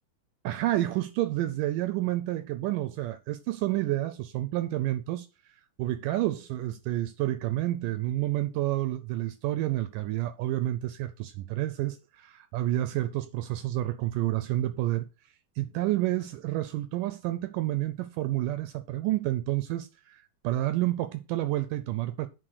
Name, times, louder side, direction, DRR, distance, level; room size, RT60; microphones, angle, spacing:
voice 1, 0.4-5.3 5.8-15.1 15.6-22.3, right 15 dB, 80° right, 2.0 m, -29 dB
8.9 x 4.2 x 6.4 m
omnidirectional pair, 4.2 m